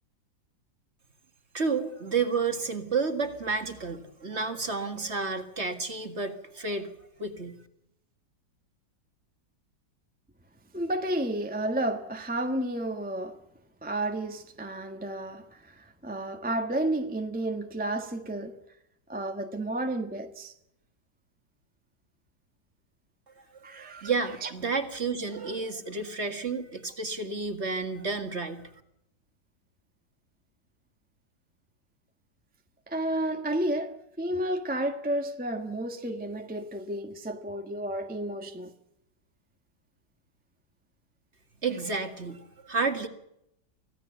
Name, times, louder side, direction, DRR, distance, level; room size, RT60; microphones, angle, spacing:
voice 1, 1.5-6.9 7.2-7.6 23.7-28.7 41.6-43.1, right 4 dB, 35° right, 2.0 m, -31 dB
voice 2, 10.7-13.4 13.8-18.6 19.1-20.5 23.6-24.1 24.4-24.5 32.9-38.7, right 1 dB, 5° right, 1.1 m, -31 dB
25.0 x 16.5 x 6.9 m
omnidirectional pair, 2.1 m